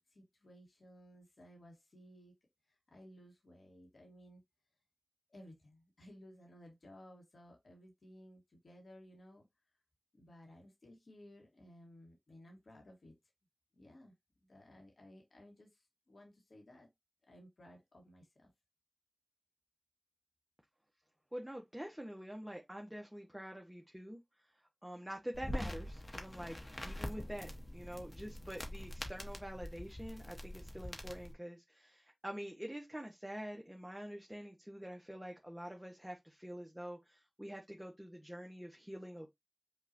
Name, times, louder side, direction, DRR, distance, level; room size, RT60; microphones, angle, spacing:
voice 1, 0.0-2.3 2.7-4.4 5.3-9.5 10.1-13.1 13.7-14.1 14.5-16.9 17.3-18.5, equal, 90° left, 1.3 m, -58 dB
voice 2, 21.3-24.2 24.8-26.6 26.8-39.3, equal, 10° right, 0.8 m, -46 dB
sound 1, 25.3-31.3, left 1 dB, 40° left, 1.0 m, -44 dB
5.4 x 2.4 x 2.6 m
wide cardioid pair, 50°, 0 cm